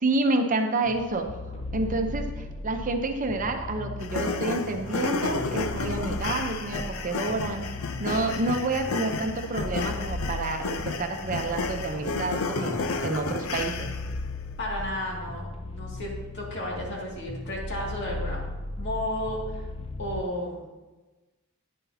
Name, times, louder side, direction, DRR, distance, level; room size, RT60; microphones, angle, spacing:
voice 1, 0.0-1.3 1.7-7.7 8.0-13.9, right 2 dB, 40° right, 5 dB, 0.7 m, -29 dB
sound 1, 0.9-20.2, left 2 dB, 25° left, 0.5 m, -37 dB
sound 2, 4.0-14.2, left 4 dB, 85° left, 0.6 m, -32 dB
voice 2, 14.6-18.5 18.8-19.7 20.0-20.7, left 1 dB, 55° left, -2 dB, 2.3 m, -33 dB
10.0 x 9.8 x 2.8 m, 1.2 s
head